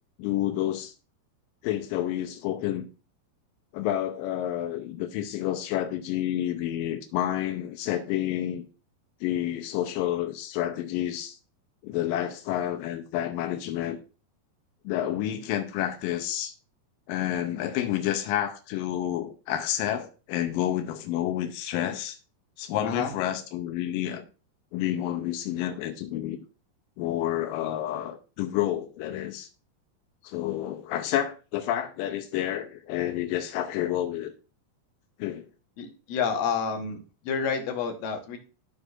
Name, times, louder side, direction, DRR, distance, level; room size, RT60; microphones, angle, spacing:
voice 1, 0.2-0.9 1.6-2.9 3.7-8.7 9.2-11.4 11.8-14.0 14.8-16.5 17.1-22.2 22.6-24.3 24.7-26.4 27.0-29.5 30.2-34.3 35.2-35.5, left 12 dB, 85° left, 2.0 m, -29 dB
voice 2, 35.8-37.0 37.3-38.4, left 6 dB, 65° left, 2.6 m, -29 dB
13.5 x 4.5 x 2.5 m
omnidirectional pair, 4.8 m